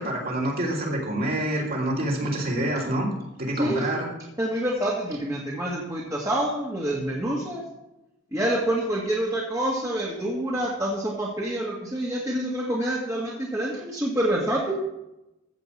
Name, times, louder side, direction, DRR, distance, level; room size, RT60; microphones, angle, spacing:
voice 1, 0.0-3.1 3.4-4.1, right 1 dB, 45° right, -2 dB, 3.2 m, -27 dB
voice 2, 3.5-4.0 4.4-7.6 8.3-14.7, right 1 dB, 15° right, -4 dB, 1.8 m, -27 dB
14.5 x 5.2 x 7.7 m, 0.91 s
head